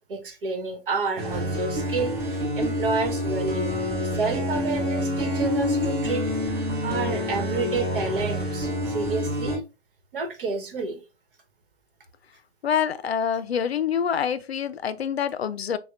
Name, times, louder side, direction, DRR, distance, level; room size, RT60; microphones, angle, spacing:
voice 1, 0.1-6.3 6.8-9.6 10.1-11.0, right 4 dB, 60° right, 1.2 m, -30 dB
sound 1, 1.2-9.6, left 1 dB, 25° right, 1.1 m, -27 dB
voice 2, 12.6-15.8, left 8 dB, 80° left, 0.5 m, -26 dB
6.4 x 2.3 x 2.5 m
figure-of-eight pair, 125°, 31 cm